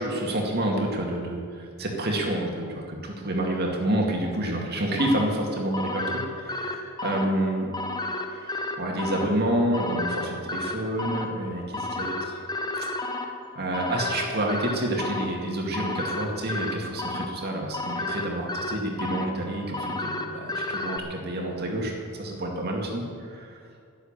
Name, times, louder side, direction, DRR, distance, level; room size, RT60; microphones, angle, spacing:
voice 1, 0.0-7.7 8.3-12.4 12.8-12.9 13.1-13.3 13.6-23.6, right 1 dB, 50° right, 0 dB, 2.3 m, -29 dB
sound 1, 5.0-21.0, left 2 dB, 20° left, 0.9 m, -33 dB
11.5 x 11.5 x 7.4 m, 2.2 s
head